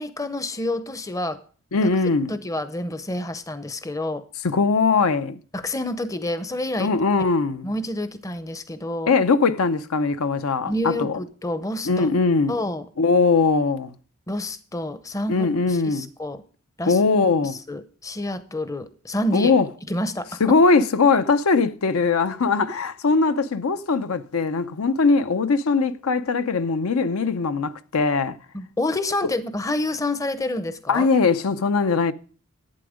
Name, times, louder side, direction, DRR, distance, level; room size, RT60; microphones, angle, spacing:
voice 1, 0.0-1.4 1.8-1.9 2.3-4.2 5.5-6.9 7.6-9.1 10.7-12.1 12.5-12.8 14.3-16.4 16.8-17.0 17.4-19.6 19.9-20.6 28.5-31.1, left 1 dB, 15° left, 0.6 m, -28 dB
voice 2, 1.7-2.3 4.4-5.4 6.8-7.7 9.1-11.2 11.9-12.6 13.0-13.9 15.3-16.1 16.9-17.6 19.3-19.7 20.4-28.4 30.9-32.1, left 4 dB, 70° left, 0.6 m, -20 dB
11.5 x 8.6 x 4.9 m
head